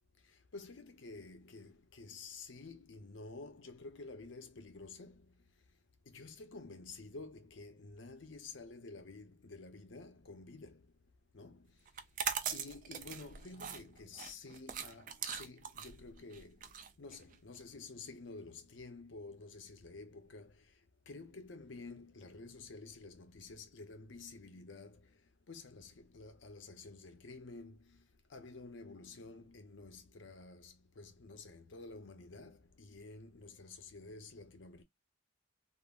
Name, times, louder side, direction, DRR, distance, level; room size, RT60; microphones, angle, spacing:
voice 1, 0.2-5.4 6.1-10.9 11.3-11.8 12.5-20.7 21.1-25.2 25.5-34.8, left 3 dB, 90° left, 0.7 m, -51 dB
sound 1, 11.9-17.6, right 8 dB, 45° right, 0.4 m, -41 dB
3.7 x 2.0 x 2.3 m
head